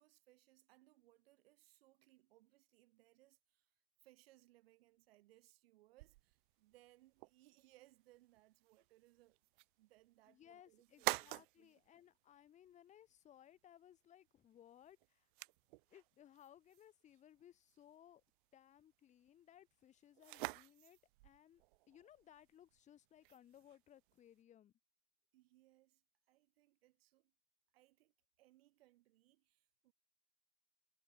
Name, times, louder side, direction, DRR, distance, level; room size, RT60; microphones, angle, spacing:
voice 1, 0.0-3.7 4.0-9.4 9.8-11.8 25.3-26.0 26.3-27.3 27.7-29.9, right 17 dB, 70° right, 3.3 m, -69 dB
sound 1, 6.0-24.4, right 23 dB, 55° right, 1.5 m, -51 dB
voice 2, 10.3-15.3 15.9-18.2 18.5-24.7, left 10 dB, 25° left, 5.0 m, -64 dB
supercardioid pair, 165°, 31 cm